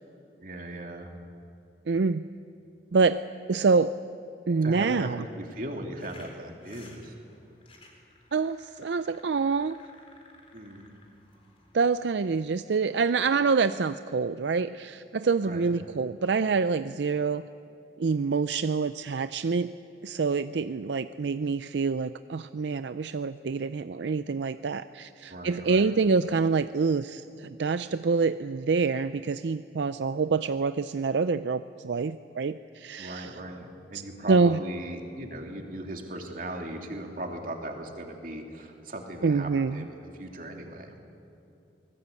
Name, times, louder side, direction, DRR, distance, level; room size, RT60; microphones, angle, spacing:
voice 1, 0.4-1.1 4.6-7.1 10.5-10.9 15.4-15.7 25.3-25.9 33.0-40.9, right 1 dB, 50° right, 2 dB, 2.8 m, -38 dB
voice 2, 1.9-2.3 2.9-3.2 3.5-3.9 4.5-5.3 8.3-9.8 11.7-17.5 18.0-19.7 20.0-33.3 34.3-34.6 39.2-39.9, right 4 dB, 80° right, 12 dB, 0.5 m, -26 dB
sound 1, 6.0-12.1, left 2 dB, 35° left, 3.9 m, -55 dB
24.5 x 19.5 x 8.4 m, 2.7 s
head